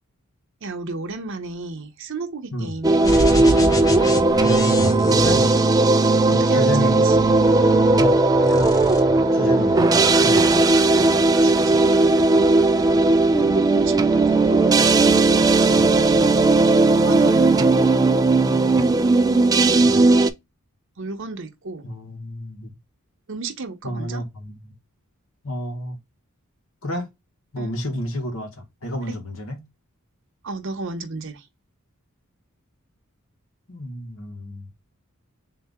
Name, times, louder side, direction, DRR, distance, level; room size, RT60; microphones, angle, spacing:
voice 1, 0.6-3.3 6.3-7.2 9.6-9.9 11.4-16.4 16.9-17.7 21.0-21.9 23.3-24.2 27.6-27.8 29.1-29.2 30.4-31.5, right 3 dB, 60° right, 0.8 m, -33 dB
sound 1, 2.8-20.3, right 3 dB, 15° right, 0.3 m, -17 dB
sound 2, 3.0-6.3 7.1-8.1 8.4-9.0, left 1 dB, 15° left, 0.7 m, -28 dB
voice 2, 4.4-4.8 5.1-5.4 6.3-7.0 7.9-9.8 10.2-10.6 15.8-15.9 19.8-20.0 21.8-22.7 23.8-24.7 25.4-26.0 26.8-27.1 27.5-29.6 33.7-34.7, left 1 dB, 65° left, 1.2 m, -30 dB
sound 3, 6.1-16.6, equal, 35° left, 1.4 m, -41 dB
4.0 x 2.7 x 3.5 m
head